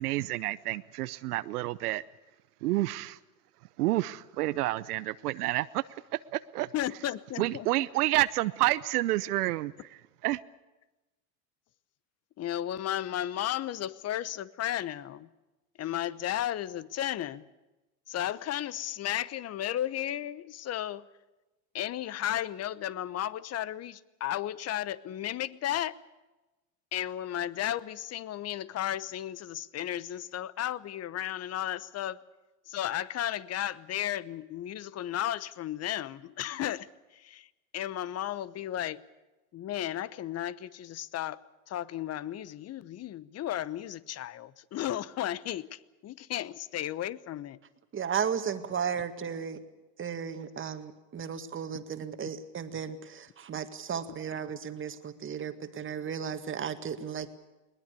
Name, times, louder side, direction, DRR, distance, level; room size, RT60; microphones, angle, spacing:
voice 1, 0.0-2.0 2.6-3.2 3.8-5.8 6.3-6.7 7.4-9.7 10.2-10.4, right 17 dB, 85° right, 15 dB, 0.8 m, -29 dB
voice 2, 6.7-7.7 12.4-15.3 15.8-17.4 18.1-21.0 21.7-26.0 26.9-32.2 32.7-39.0 39.5-41.4 41.7-47.6, left 12 dB, 35° left, 19 dB, 1.0 m, -34 dB
voice 3, 47.9-49.6 50.0-57.4, right 7 dB, 25° right, 9 dB, 1.9 m, -35 dB
21.0 x 19.5 x 8.3 m, 1.1 s
supercardioid pair, 110°, 44 cm